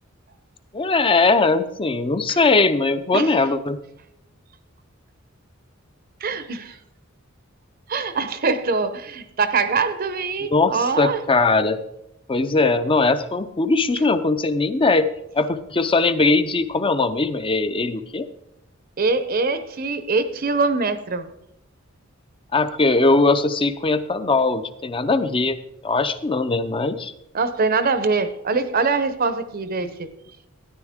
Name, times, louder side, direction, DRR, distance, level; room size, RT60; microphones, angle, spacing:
voice 1, 0.7-3.8 10.5-11.8 12.3-15.1 15.3-18.3 22.5-25.6 25.8-27.1 29.8-29.9, left 3 dB, 25° left, 11 dB, 0.6 m, -20 dB
voice 2, 6.2-6.8 7.9-11.2 19.0-21.3 27.3-30.1, right 4 dB, 45° right, 11 dB, 0.8 m, -23 dB
13.0 x 10.0 x 3.6 m, 0.83 s
head